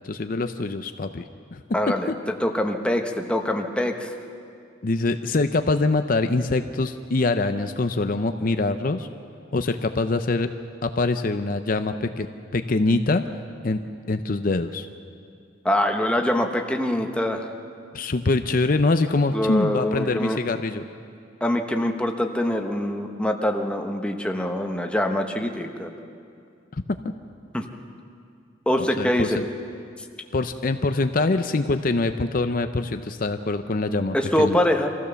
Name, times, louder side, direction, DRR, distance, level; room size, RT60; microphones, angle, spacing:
voice 1, 0.0-1.2 1.5-1.6 4.8-9.1 9.5-10.5 10.8-12.3 12.5-13.2 13.6-13.8 14.1-14.9 17.9-20.9 26.7-26.8 28.8-29.4 30.3-34.6, left 3 dB, 45° left, 8 dB, 0.6 m, -24 dB
voice 2, 1.7-2.1 2.4-4.1 15.6-17.5 19.3-20.4 21.4-25.9 27.5-27.6 28.7-29.4 34.1-34.9, left 1 dB, 5° left, 3 dB, 1.1 m, -24 dB
25.0 x 15.5 x 7.0 m, 2.4 s
head